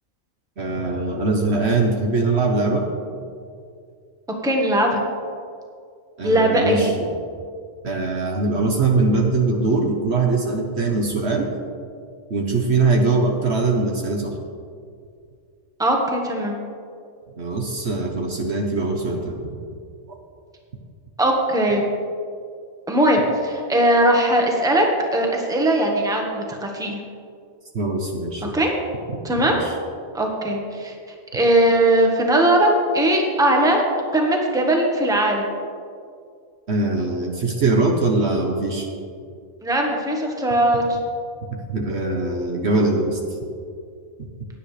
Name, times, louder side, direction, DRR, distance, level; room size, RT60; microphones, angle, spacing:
voice 1, 0.6-2.9 6.2-7.1 7.8-11.5 12.3-14.3 17.4-19.4 27.7-28.6 29.1-29.7 36.7-38.9 41.7-43.2, right 3 dB, 55° right, 1 dB, 1.3 m, -22 dB
voice 2, 4.4-5.0 6.2-6.9 15.8-16.6 21.2-21.8 22.9-24.8 25.1-27.0 28.5-28.7 29.2-29.6 30.1-30.9 31.3-33.8 34.1-35.5 39.6-41.0, right 1 dB, 5° right, 0 dB, 1.2 m, -19 dB
16.0 x 10.0 x 3.3 m, 2.3 s
omnidirectional pair, 1.4 m